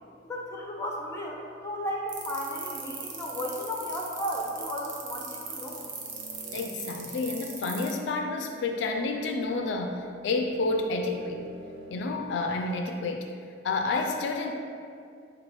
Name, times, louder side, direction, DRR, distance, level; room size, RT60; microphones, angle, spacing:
voice 1, 0.3-5.8, equal, 15° left, -1 dB, 0.5 m, -34 dB
sound 1, 2.1-7.9, right 6 dB, 85° right, 0.7 m, -38 dB
sound 2, 5.7-12.0, equal, 30° right, 0.7 m, -48 dB
voice 2, 6.5-11.4 11.9-13.3 13.6-14.5, left 3 dB, 65° left, 3 dB, 0.3 m, -29 dB
4.6 x 2.4 x 4.5 m, 2.3 s
head